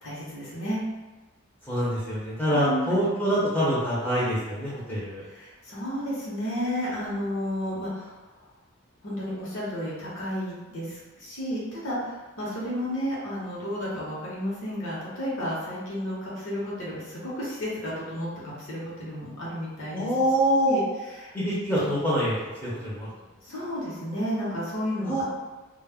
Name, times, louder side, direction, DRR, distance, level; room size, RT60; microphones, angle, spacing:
voice 1, 0.0-0.8 2.5-3.0 5.4-8.1 9.0-20.1 20.5-20.8 21.2-21.3 23.5-25.2, equal, 65° left, -6 dB, 0.9 m, -32 dB
voice 2, 1.7-5.2 19.9-20.8 21.3-23.1 25.0-25.2, equal, 10° left, -10 dB, 0.6 m, -25 dB
2.2 x 2.0 x 3.4 m, 1.2 s
head